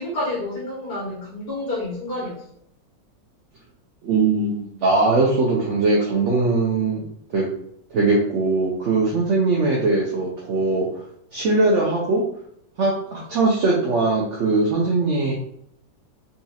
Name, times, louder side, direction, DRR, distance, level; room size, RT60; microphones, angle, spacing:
voice 1, 0.0-2.4, left 1 dB, 70° left, -7 dB, 1.7 m, -29 dB
voice 2, 4.0-7.0 7.3-7.5 7.9-11.0 11.3-12.2 12.8-15.3, right 3 dB, 65° right, -3 dB, 0.7 m, -20 dB
4.0 x 2.4 x 2.7 m, 0.70 s
omnidirectional pair, 1.9 m